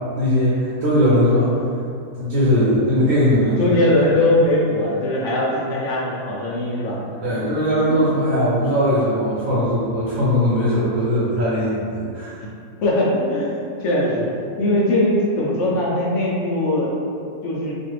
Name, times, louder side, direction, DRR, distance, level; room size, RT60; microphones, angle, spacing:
voice 1, 0.1-1.5 2.1-3.7 7.2-12.4, equal, 65° right, -9 dB, 1.0 m, -19 dB
voice 2, 3.6-7.4 7.9-8.0 12.8-14.3 14.6-16.9 17.4-17.8, left 1 dB, 65° left, -5 dB, 0.8 m, -20 dB
3.1 x 2.5 x 3.0 m, 2.4 s
omnidirectional pair, 1.7 m